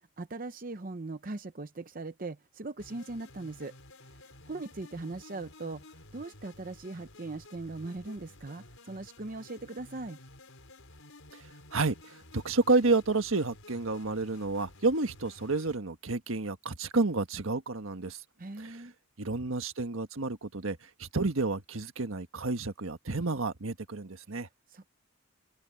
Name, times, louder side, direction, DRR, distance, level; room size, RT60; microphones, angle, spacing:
voice 1, 0.2-3.7 4.5-5.8 6.1-10.2 18.4-18.9 24.7-24.9, right 2 dB, 40° right, 0.7 m, -40 dB
sound 1, 2.8-15.8, left 2 dB, 80° left, 4.8 m, -53 dB
voice 2, 11.7-18.2 18.6-18.9 19.2-24.5, right 3 dB, 80° right, 1.4 m, -30 dB
open air
head